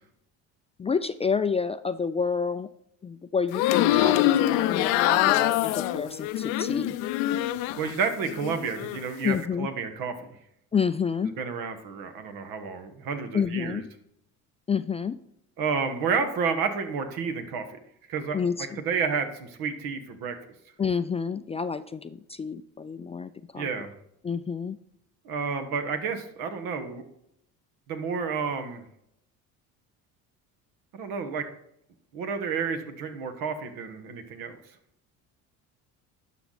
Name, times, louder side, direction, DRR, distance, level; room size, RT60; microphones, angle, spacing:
voice 1, 0.8-2.7 3.0-7.0 9.2-9.7 10.7-11.4 13.3-13.9 14.7-15.2 18.3-18.8 20.8-23.7 24.2-24.8, left 6 dB, 20° left, 12 dB, 0.3 m, -29 dB
sound 1, 3.5-7.9 8.2-9.0, left 14 dB, 80° left, 0.6 m, -24 dB
voice 2, 7.7-10.4 11.4-13.8 15.6-17.8 18.1-18.4 18.8-20.3 23.6-23.9 25.2-27.0 27.9-28.8 30.9-31.4 32.1-34.6, right 5 dB, 75° right, 7 dB, 1.5 m, -30 dB
11.5 x 6.1 x 4.0 m, 0.76 s
supercardioid pair, 85°, 35 cm